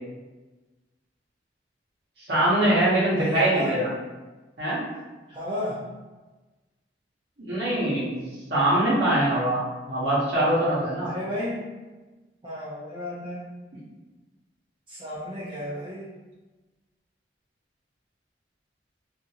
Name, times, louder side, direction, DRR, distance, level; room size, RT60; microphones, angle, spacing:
voice 1, 2.3-3.9 4.6-4.8 7.4-8.1 8.5-9.6 9.9-11.1, right 1 dB, 60° right, -9 dB, 0.9 m, -23 dB
voice 2, 3.1-3.8 5.3-5.8 11.0-11.7 12.4-13.4 14.9-16.1, left 1 dB, 25° right, -9 dB, 0.5 m, -33 dB
2.8 x 2.4 x 2.8 m, 1.2 s
head